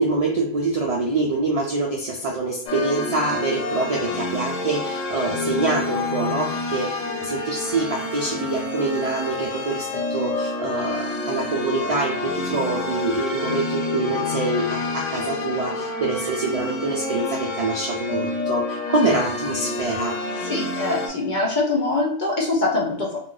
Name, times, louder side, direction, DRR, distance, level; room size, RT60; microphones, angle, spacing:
voice 1, 0.0-6.9 7.2-20.1, right 2 dB, 60° right, -2 dB, 0.3 m, -25 dB
sound 1, 2.7-21.1, left 2 dB, 75° left, 1.0 m, -28 dB
voice 2, 20.4-23.2, left 2 dB, 45° left, -2 dB, 0.8 m, -23 dB
2.6 x 2.3 x 3.7 m, 0.65 s
omnidirectional pair, 1.3 m